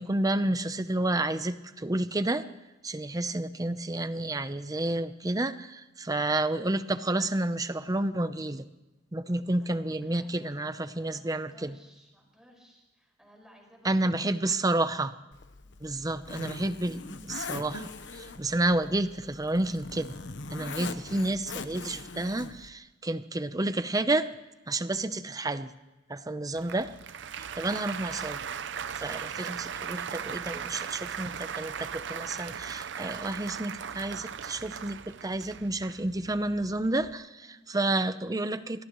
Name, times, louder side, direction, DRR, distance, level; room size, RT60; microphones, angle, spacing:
voice 1, 0.0-2.5 2.8-8.7 9.1-11.7 13.8-15.1 15.8-20.2 20.5-24.3 24.7-25.7 26.1-26.9 27.6-28.4 29.0-38.8, right 2 dB, 20° right, 11 dB, 0.7 m, -30 dB
voice 2, 9.6-14.4 15.6-16.0 27.2-27.6 37.4-37.7, equal, 5° right, -1 dB, 5.4 m, -58 dB
Zipper (clothing), 15.3-22.7, left 3 dB, 70° left, 1.0 m, -41 dB
Applause, 26.5-37.1, right 7 dB, 70° right, 0.6 m, -38 dB
25.0 x 18.5 x 3.1 m, 1.1 s
head